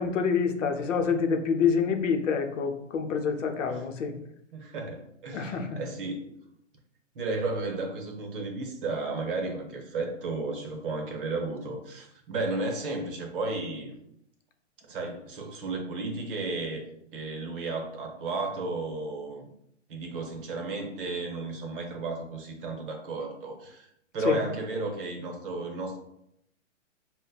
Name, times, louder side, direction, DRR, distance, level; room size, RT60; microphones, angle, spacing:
voice 1, 0.0-4.1 5.3-5.7 24.2-24.4, left 6 dB, 80° left, 5 dB, 0.7 m, -27 dB
voice 2, 4.5-6.3 7.1-14.0 14.8-16.9 17.1-19.5 19.9-26.0, right 3 dB, 45° right, 2 dB, 0.9 m, -33 dB
5.2 x 2.1 x 2.2 m, 0.77 s
hypercardioid pair, 155°, 37 cm